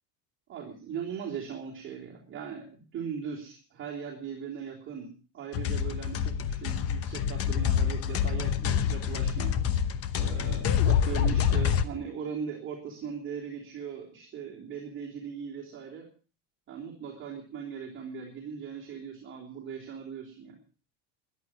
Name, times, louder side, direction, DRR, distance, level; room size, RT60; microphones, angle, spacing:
voice 1, 0.5-9.5 10.1-16.0 16.7-20.6, right 7 dB, 30° right, -3 dB, 3.2 m, -39 dB
sound 1, 5.5-11.8, left 8 dB, 35° left, 1.0 m, -27 dB
14.0 x 11.5 x 6.1 m, 0.38 s
cardioid pair, 165°, 40 cm